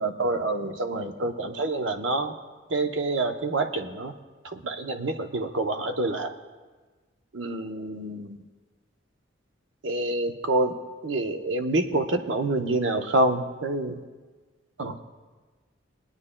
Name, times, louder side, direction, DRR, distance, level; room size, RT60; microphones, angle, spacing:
voice 1, 0.0-2.3 2.7-4.1 4.4-6.3 7.3-8.4 9.8-10.7 11.0-14.0 14.8-15.0, right 2 dB, 75° right, 7 dB, 0.7 m, -27 dB
24.0 x 9.7 x 2.2 m, 1.3 s
head